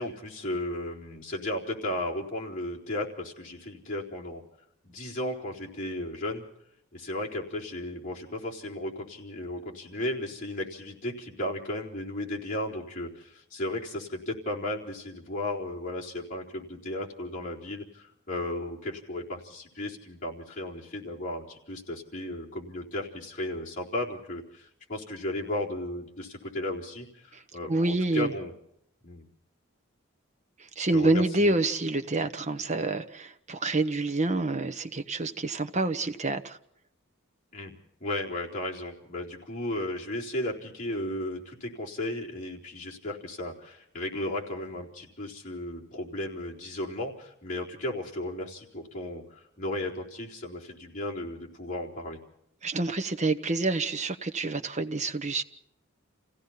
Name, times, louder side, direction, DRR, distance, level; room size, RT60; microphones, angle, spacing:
voice 1, 0.0-4.4 4.8-6.4 6.9-28.5 29.0-29.2 30.9-31.5 37.5-37.7 38.0-52.2, left 1 dB, 40° left, -4 dB, 4.0 m, -35 dB
voice 2, 27.7-28.3 30.6-36.6 52.6-55.4, right 2 dB, 35° right, 10 dB, 1.1 m, -27 dB
29.0 x 16.0 x 5.8 m, 0.73 s
head